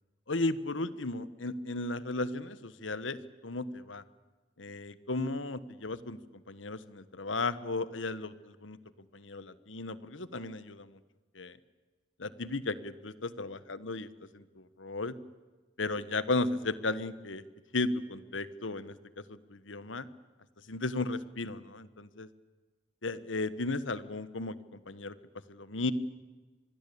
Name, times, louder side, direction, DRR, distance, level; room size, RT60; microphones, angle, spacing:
voice 1, 0.3-4.0 4.6-8.8 9.1-11.0 11.3-11.6 12.2-15.2 15.8-17.4 17.7-20.1 20.7-22.3 23.0-25.1 25.5-25.9, left 2 dB, 85° left, 15 dB, 1.4 m, -35 dB
26.5 x 22.0 x 8.7 m, 1.3 s
head